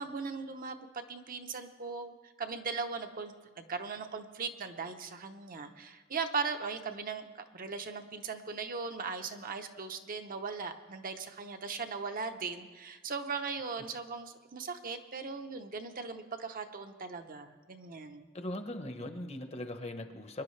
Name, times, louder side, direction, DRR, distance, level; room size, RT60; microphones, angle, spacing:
voice 1, 0.0-3.3 3.7-18.3, right 5 dB, 40° right, 6 dB, 0.7 m, -39 dB
voice 2, 18.3-20.4, left 1 dB, 30° left, 7 dB, 0.9 m, -39 dB
24.0 x 10.5 x 3.2 m, 1.4 s
head